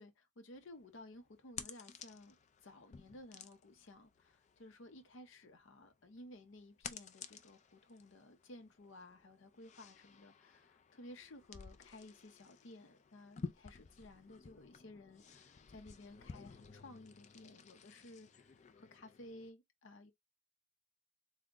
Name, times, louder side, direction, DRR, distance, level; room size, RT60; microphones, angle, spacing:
voice 1, 0.0-2.4 2.6-20.1, left 1 dB, 75° left, 0.6 m, -56 dB
sound 1, 0.6-19.5, left 5 dB, 35° left, 0.4 m, -54 dB
3.5 x 2.1 x 3.6 m
head